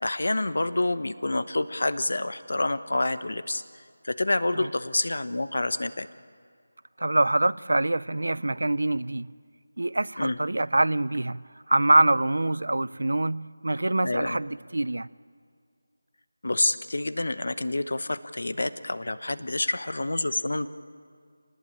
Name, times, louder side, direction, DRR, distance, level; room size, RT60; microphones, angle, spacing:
voice 1, 0.0-3.6 4.0-6.1 10.2-10.4 14.0-14.4 16.4-20.7, left 2 dB, 70° left, 13 dB, 1.1 m, -28 dB
voice 2, 7.0-9.3 9.8-15.1, right 2 dB, 85° right, 20 dB, 0.5 m, -25 dB
25.0 x 19.5 x 8.8 m, 2.1 s
figure-of-eight pair, 175°, 0 cm